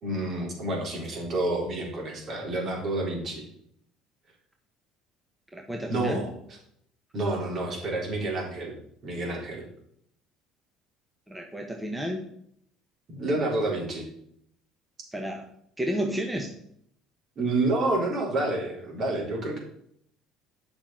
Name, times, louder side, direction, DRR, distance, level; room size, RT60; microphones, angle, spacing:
voice 1, 0.0-3.4 5.9-6.3 7.1-8.8 9.0-9.6 13.1-14.1 17.4-19.6, right 2 dB, 50° right, -2 dB, 4.0 m, -29 dB
voice 2, 5.5-6.3 11.3-12.3 15.1-15.5 15.8-16.5, equal, 5° right, 2 dB, 1.3 m, -31 dB
8.8 x 6.0 x 5.8 m, 0.70 s
supercardioid pair, 90°, 0 cm